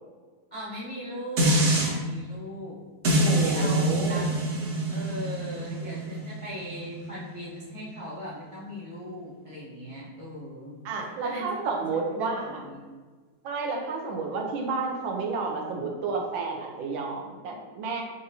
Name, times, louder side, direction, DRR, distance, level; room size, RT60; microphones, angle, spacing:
voice 1, 0.5-2.8 3.4-4.3 4.9-12.8, equal, 40° left, -9 dB, 0.4 m, -39 dB
sound 1, 1.4-1.9 3.0-8.2 8.6-8.7, right 1 dB, 50° right, 0.8 m, -26 dB
voice 2, 3.2-4.2 10.8-12.6 13.4-18.0, right 4 dB, 75° right, 1 dB, 1.4 m, -31 dB
6.8 x 2.5 x 2.7 m, 1.4 s
omnidirectional pair, 2.2 m